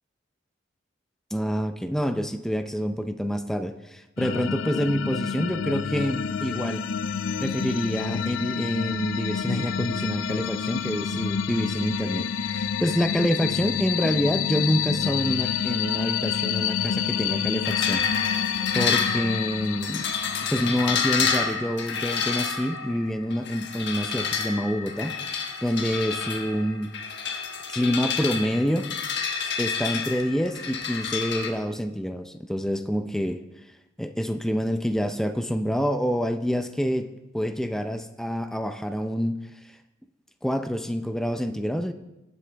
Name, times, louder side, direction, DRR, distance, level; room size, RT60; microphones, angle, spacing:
voice 1, 1.3-6.8 7.4-18.0 18.3-20.1 20.5-26.9 27.7-28.9 29.4-33.4 34.0-39.4 39.6-39.8 40.4-41.9, equal, ahead, 8 dB, 0.5 m, -27 dB
sound 1, 4.2-21.4, left 7 dB, 85° left, 0.5 m, -28 dB
sound 2, 17.6-31.5, left 6 dB, 60° left, 1.4 m, -29 dB
19.5 x 8.3 x 3.4 m, 0.98 s
head